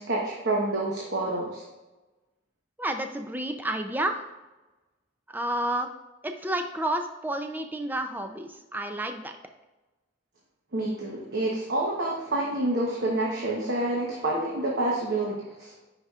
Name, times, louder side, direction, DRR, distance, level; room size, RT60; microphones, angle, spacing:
voice 1, 0.0-1.6 10.7-15.7, right 2 dB, 60° right, -3 dB, 1.0 m, -28 dB
voice 2, 2.8-4.2 5.3-5.9 6.2-9.3, right 1 dB, 10° right, 5 dB, 0.4 m, -30 dB
9.7 x 4.9 x 2.4 m, 1.1 s
head